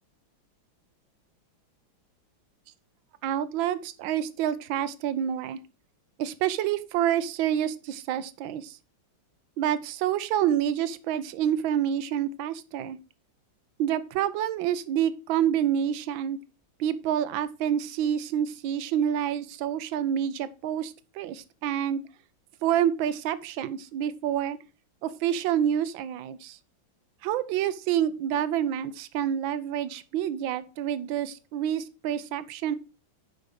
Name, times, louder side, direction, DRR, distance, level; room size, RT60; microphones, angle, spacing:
voice 1, 3.2-5.6 6.2-8.8 9.6-13.0 13.8-16.4 16.8-22.0 22.6-24.6 25.0-26.6 27.2-32.8, right 10 dB, 80° right, 14 dB, 1.4 m, -28 dB
8.0 x 5.3 x 4.9 m, 0.32 s
omnidirectional pair, 2.1 m